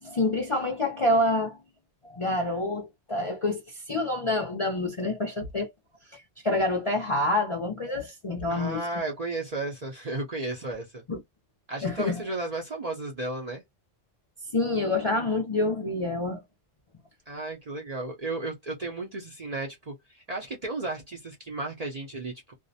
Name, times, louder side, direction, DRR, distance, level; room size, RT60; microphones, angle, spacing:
voice 1, 0.0-1.6 2.1-5.7 6.1-8.8 11.1-11.2 11.8-12.2 14.5-16.4, left 2 dB, 45° left, 0.4 m, -27 dB
voice 2, 8.5-11.0 11.7-13.6 17.3-22.5, right 2 dB, 45° right, 0.6 m, -34 dB
2.5 x 2.0 x 2.6 m
omnidirectional pair, 1.2 m